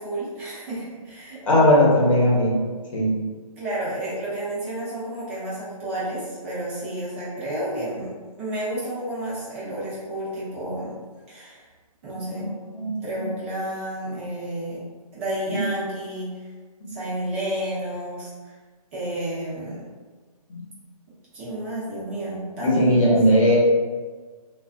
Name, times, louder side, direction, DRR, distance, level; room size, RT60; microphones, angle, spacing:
voice 1, 0.0-1.4 3.6-8.1 8.4-10.9 11.3-11.6 12.0-12.4 13.0-14.8 15.1-16.3 16.9-18.5 18.9-19.8 21.3-23.1, right 1 dB, 20° right, -9 dB, 0.7 m, -31 dB
voice 2, 1.5-2.6 2.9-3.1 12.3-13.3 15.5-15.6 16.8-16.9 20.5-20.6 22.6-23.6, equal, 60° left, -4 dB, 0.9 m, -19 dB
2.4 x 2.3 x 2.4 m, 1.4 s
hypercardioid pair, 155°, 20 cm